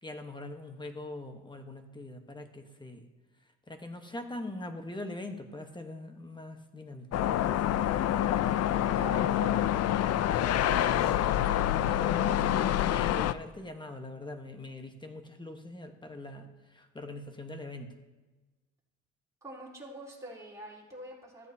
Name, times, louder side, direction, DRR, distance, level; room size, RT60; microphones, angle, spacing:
voice 1, 0.0-3.0 3.7-7.6 9.1-9.4 10.3-11.4 11.9-17.9, left 1 dB, 15° left, 6 dB, 1.2 m, -42 dB
sound 1, 7.1-13.3, left 11 dB, 55° left, 0.4 m, -27 dB
voice 2, 8.9-9.6 10.8-11.7 19.4-21.5, right 1 dB, 10° right, -5 dB, 3.9 m, -46 dB
14.5 x 8.8 x 2.8 m, 1.2 s
cardioid pair, 90°, 30 cm